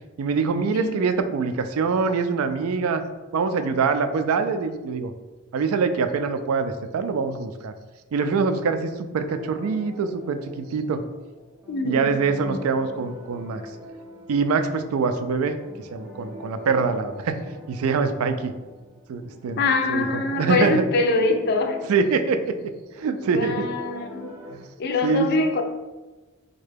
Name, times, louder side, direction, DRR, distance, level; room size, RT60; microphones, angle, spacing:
voice 1, 0.2-3.0 3.3-5.1 5.5-7.7 8.1-11.0 11.8-13.6 14.3-15.6 15.9-17.4 17.7-18.5 19.1-19.6 19.9-20.9 21.9-22.6 23.0-23.7 24.5-24.7 25.0-25.3, right 5 dB, 90° right, 9 dB, 0.3 m, -24 dB
voice 2, 0.7-1.0 11.7-12.2 12.5-12.6 19.6-21.8 23.3-24.3 24.8-25.6, left 3 dB, 50° left, 5 dB, 0.4 m, -24 dB
sound 1, 9.3-24.5, left 1 dB, 5° right, 0.6 m, -43 dB
3.6 x 2.2 x 3.3 m, 1.2 s
head